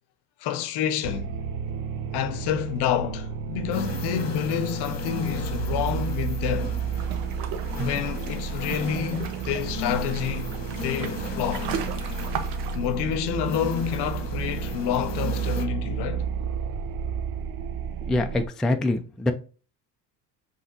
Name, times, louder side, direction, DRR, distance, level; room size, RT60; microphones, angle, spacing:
voice 1, 0.4-1.3 2.1-6.8 7.7-10.5 10.8-11.8 12.7-16.3, left 9 dB, 60° left, 0.7 m, -28 dB
sound 1, 1.0-18.5, right 6 dB, 50° right, 0.5 m, -32 dB
sound 2, 3.7-15.7, left 5 dB, 35° left, 1.1 m, -38 dB
sound 3, 7.0-12.8, right 8 dB, 85° right, 0.7 m, -36 dB
voice 2, 18.0-19.3, left 2 dB, ahead, 0.3 m, -25 dB
5.6 x 3.1 x 2.8 m
supercardioid pair, 75°, 45 cm